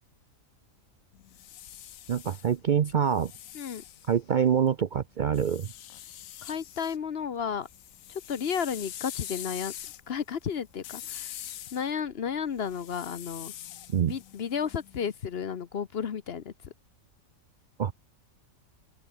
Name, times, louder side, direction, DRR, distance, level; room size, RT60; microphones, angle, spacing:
sound 1, 1.1-4.7 5.3-7.0 7.3-15.3, left 11 dB, 85° left, 1.2 m, -44 dB
voice 1, 2.1-3.3 4.1-5.7 13.9-14.1 17.8-17.9, right 8 dB, 55° right, 0.5 m, -25 dB
voice 2, 6.4-7.7 8.1-9.7 10.1-11.3 11.7-13.5 14.1-16.7, left 7 dB, 55° left, 1.0 m, -33 dB
open air
omnidirectional pair, 1.4 m